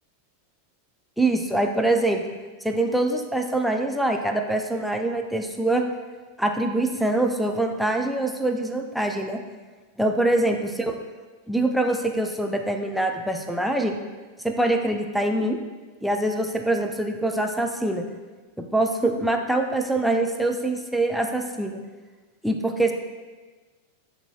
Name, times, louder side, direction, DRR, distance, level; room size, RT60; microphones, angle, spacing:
voice 1, 1.2-2.2 2.6-5.8 6.4-9.4 10.0-10.9 11.5-14.0 14.4-15.6 16.0-18.0 18.6-21.8 22.4-22.9, right 2 dB, ahead, 3 dB, 0.3 m, -24 dB
6.6 x 2.6 x 2.3 m, 1.3 s
figure-of-eight pair, 90°, 0 cm